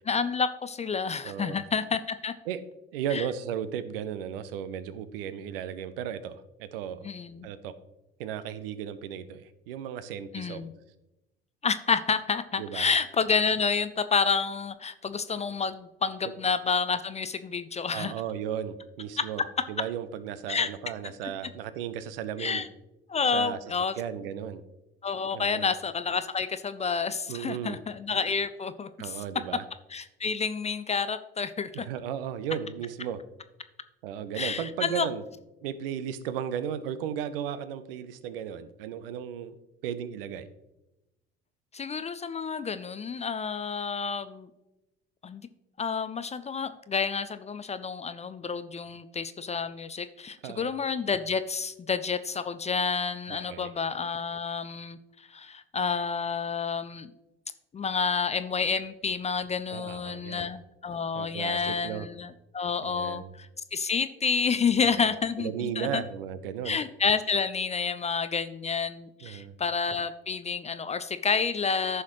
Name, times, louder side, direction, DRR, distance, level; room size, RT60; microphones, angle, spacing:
voice 1, 0.1-2.3 3.1-3.3 7.0-7.5 10.3-10.7 11.6-18.1 20.5-20.7 22.4-22.7 23.1-24.0 25.0-29.2 29.9-31.9 34.3-35.1 41.7-44.5 45.2-45.5 45.8-57.1 57.7-66.0 66.6-72.0, left 5 dB, 20° left, 12 dB, 0.5 m, -29 dB
voice 2, 1.2-1.6 2.5-2.6 2.9-7.1 7.4-7.7 8.2-10.7 12.6-12.9 17.9-22.6 23.3-23.6 24.0-24.6 25.3-25.7 27.3-27.8 29.0-29.6 31.7-33.2 34.0-35.2 35.6-39.6 39.8-40.5 50.4-50.7 53.3-53.7 59.7-60.5 61.1-62.1 62.8-63.3 64.8-65.1 65.4-66.8 69.2-69.5, right 9 dB, 70° right, 13 dB, 0.7 m, -35 dB
14.0 x 5.7 x 3.1 m, 0.95 s
figure-of-eight pair, 55°, 30 cm